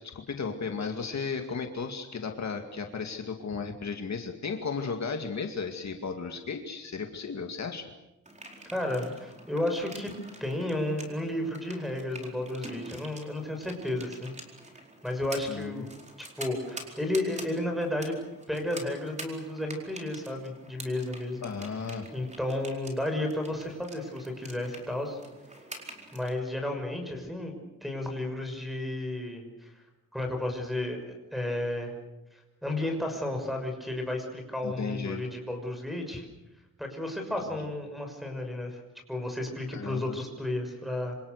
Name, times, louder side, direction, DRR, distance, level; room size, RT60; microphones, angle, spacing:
voice 1, 0.0-7.9 15.5-15.8 21.4-22.1 34.6-35.3 39.7-40.2, left 5 dB, 55° left, 4 dB, 2.3 m, -35 dB
sound 1, 8.3-26.3, right 1 dB, 20° right, 4.5 m, -46 dB
voice 2, 8.7-10.1 10.4-14.3 15.0-15.9 16.4-18.2 18.5-21.4 22.1-25.2 26.1-27.6 27.8-29.7 30.1-32.0 32.3-36.3 36.8-38.8 39.1-41.2, left 1 dB, ahead, 4 dB, 6.1 m, -32 dB
27.0 x 27.0 x 6.7 m, 0.96 s
wide cardioid pair, 160°, 33 cm